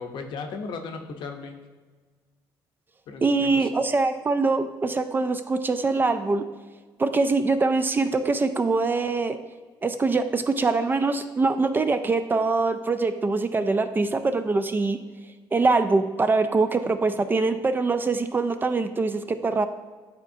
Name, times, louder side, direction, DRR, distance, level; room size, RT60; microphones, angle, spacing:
voice 1, 0.0-1.6 3.1-3.7, left 4 dB, 65° left, 5 dB, 0.8 m, -36 dB
voice 2, 3.2-6.5 7.0-9.4 9.8-15.0 15.5-19.7, right 3 dB, 25° right, 9 dB, 0.3 m, -23 dB
9.8 x 4.0 x 2.7 m, 1.4 s
cardioid pair, 105°, 9 cm